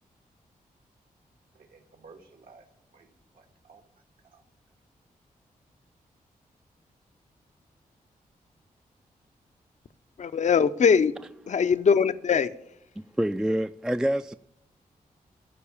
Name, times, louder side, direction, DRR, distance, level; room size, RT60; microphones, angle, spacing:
voice 1, 1.5-2.7 2.9-3.8 4.2-4.4, right 4 dB, 75° right, 1.7 m, -54 dB
voice 2, 10.2-11.1 11.5-12.6, left 6 dB, 50° left, 0.5 m, -21 dB
voice 3, 13.0-14.3, right 1 dB, 5° right, 0.3 m, -27 dB
13.0 x 4.7 x 8.6 m
cardioid pair, 45°, 16 cm